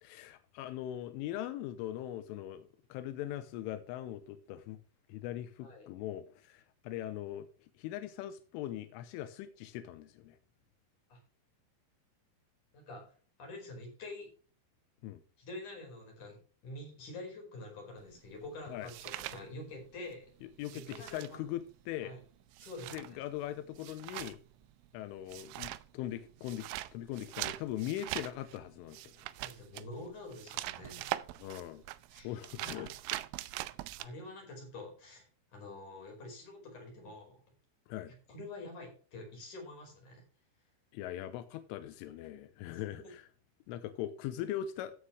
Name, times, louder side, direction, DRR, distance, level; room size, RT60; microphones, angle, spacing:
voice 1, 0.0-4.8 5.1-7.5 7.8-10.4 15.0-15.2 18.7-18.9 20.6-22.1 22.9-24.4 24.9-29.3 31.4-31.8 32.2-32.9 37.9-38.1 40.9-43.3 43.7-44.9, left 12 dB, 85° left, 11 dB, 3.3 m, -41 dB
voice 2, 12.7-13.0 13.4-14.3 15.4-16.4 16.6-20.3 20.7-21.4 22.0-22.2 22.6-23.2 29.4-31.1 32.1-32.9 34.0-37.4 38.1-40.2 42.6-43.1, left 2 dB, 40° left, 1 dB, 6.0 m, -47 dB
sound 1, 18.0-20.1 20.4-34.1, right 17 dB, 85° right, 3.2 m, -43 dB
14.5 x 7.7 x 3.3 m, 0.40 s
omnidirectional pair, 5.8 m